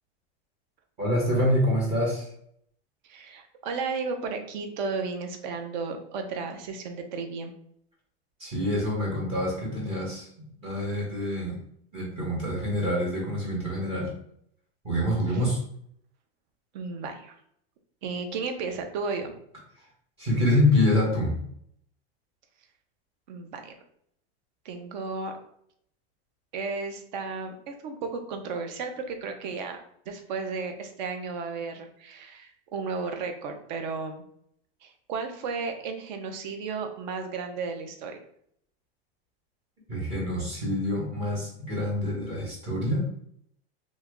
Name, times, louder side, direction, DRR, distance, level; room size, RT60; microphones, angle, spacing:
voice 1, 1.0-2.3 8.4-10.3 10.6-11.6 11.9-14.1 14.8-15.6 20.2-21.4 39.9-43.0, left 1 dB, 20° right, -3 dB, 0.9 m, -26 dB
voice 2, 3.0-7.5 15.3-15.4 16.7-17.4 18.0-19.4 23.3-23.7 24.6-25.4 26.5-34.2 34.8-38.2, right 4 dB, 45° right, 5 dB, 0.5 m, -34 dB
3.0 x 2.3 x 3.5 m, 0.69 s
supercardioid pair, 175°, 32 cm